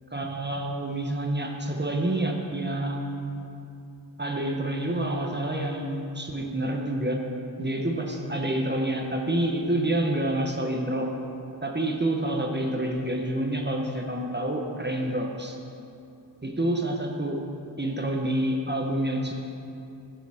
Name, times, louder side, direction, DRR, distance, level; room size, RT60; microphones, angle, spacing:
voice 1, 0.1-3.4 4.2-7.2 7.6-11.1 11.6-15.6 16.4-17.4 17.8-19.3, right 1 dB, 25° right, 1 dB, 1.0 m, -28 dB
13.0 x 7.8 x 3.5 m, 2.7 s
wide cardioid pair, 75°, 44 cm